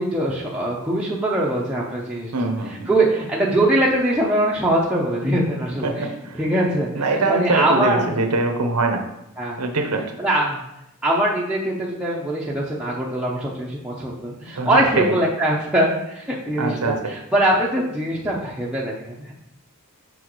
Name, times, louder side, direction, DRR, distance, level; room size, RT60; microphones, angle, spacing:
voice 1, 0.0-8.1 9.4-9.6 10.2-10.6 11.0-19.3, right 1 dB, 5° right, -5 dB, 0.6 m, -22 dB
voice 2, 2.3-2.9 5.8-6.4 6.9-9.0 9.6-10.0 14.6-15.2 16.6-17.0, right 3 dB, 85° right, 4 dB, 0.9 m, -23 dB
6.2 x 5.6 x 3.0 m, 0.84 s
head